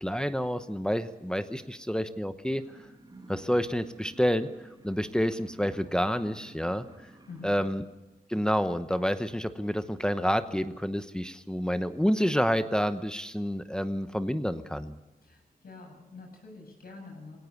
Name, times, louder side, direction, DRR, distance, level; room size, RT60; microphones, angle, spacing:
voice 1, 0.0-2.6 3.3-4.5 4.8-6.8 7.4-7.8 8.3-15.0, equal, 5° left, 10 dB, 0.9 m, -28 dB
sound 1, 2.5-7.5, right 2 dB, 25° right, 5.0 m, -52 dB
voice 2, 7.3-7.6 15.2-17.4, left 3 dB, 70° left, 1 dB, 7.9 m, -47 dB
21.5 x 17.5 x 7.1 m, 1.0 s
wide cardioid pair, 115°, 16 cm